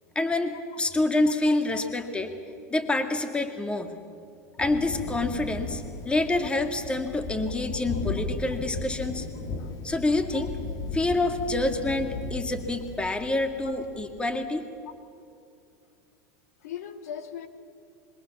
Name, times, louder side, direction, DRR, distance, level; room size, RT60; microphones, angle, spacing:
voice 1, 0.2-2.3 2.7-3.9 4.6-9.3 9.8-10.5 10.9-14.7, left 2 dB, 10° left, 6 dB, 2.2 m, -27 dB
voice 2, 1.4-1.9 7.9-8.0 9.6-9.8 10.3-10.5 13.6-13.8 16.6-17.5, left 8 dB, 85° left, 7 dB, 2.4 m, -40 dB
Thunder, 4.6-14.2, left 3 dB, 45° left, 2.6 m, -36 dB
26.0 x 23.0 x 7.3 m, 2.5 s
supercardioid pair, 120°, 8 cm